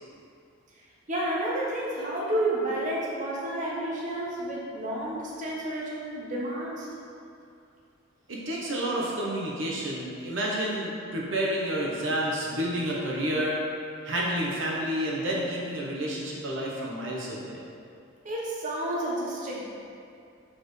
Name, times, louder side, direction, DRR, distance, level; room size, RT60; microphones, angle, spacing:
voice 1, 1.1-6.9 18.2-19.7, right 1 dB, 40° right, -5 dB, 0.9 m, -30 dB
voice 2, 8.3-13.6 14.0-17.6, right 1 dB, 65° right, -4 dB, 0.9 m, -30 dB
7.4 x 4.3 x 3.2 m, 2.4 s
head